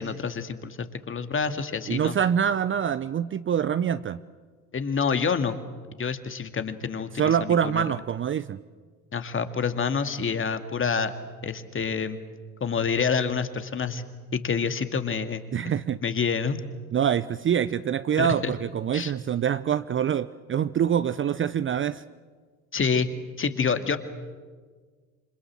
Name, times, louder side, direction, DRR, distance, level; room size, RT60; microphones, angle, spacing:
voice 1, 0.0-2.1 4.7-5.6 6.0-7.8 9.1-11.1 11.4-12.2 12.6-14.0 14.3-15.4 16.0-16.6 18.2-18.5 18.9-19.1 22.7-23.1 23.4-24.0, left 5 dB, 30° left, 9 dB, 2.2 m, -27 dB
voice 2, 1.9-4.2 7.1-8.6 15.5-16.0 16.9-22.0, right 8 dB, 30° right, 15 dB, 0.7 m, -25 dB
27.5 x 26.0 x 7.5 m, 1.5 s
hypercardioid pair, 65°, 44 cm